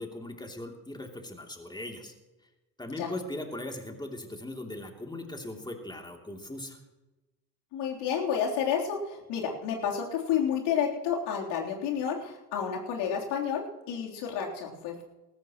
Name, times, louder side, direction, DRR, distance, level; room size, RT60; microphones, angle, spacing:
voice 1, 0.0-2.1 2.8-6.8, left 1 dB, 10° left, 3 dB, 2.9 m, -39 dB
voice 2, 7.7-15.0, left 7 dB, 55° left, -1 dB, 3.6 m, -30 dB
20.0 x 17.5 x 3.1 m, 1.1 s
figure-of-eight pair, 65°, 49 cm